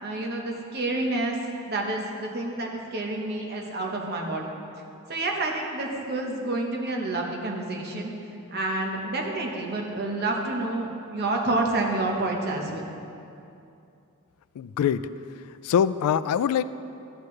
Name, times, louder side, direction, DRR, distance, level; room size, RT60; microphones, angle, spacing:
voice 1, 0.0-1.3 1.7-4.5 5.1-8.1 8.5-12.8, right 2 dB, 45° right, 0 dB, 1.1 m, -29 dB
voice 2, 14.6-15.1 15.6-16.6, left 8 dB, 85° left, 16 dB, 0.3 m, -23 dB
12.5 x 8.7 x 3.2 m, 2.6 s
head